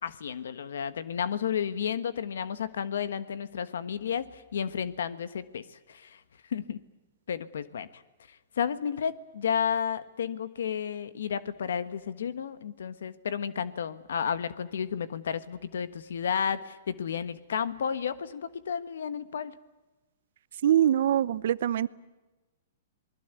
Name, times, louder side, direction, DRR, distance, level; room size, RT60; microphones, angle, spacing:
voice 1, 0.0-6.2 6.5-6.8 7.3-8.0 8.3-19.6, left 7 dB, 80° left, 14 dB, 1.3 m, -32 dB
voice 2, 20.6-21.9, right 10 dB, 65° right, 18 dB, 0.8 m, -23 dB
27.5 x 20.5 x 8.1 m, 1.1 s
hypercardioid pair, 145°, 0 cm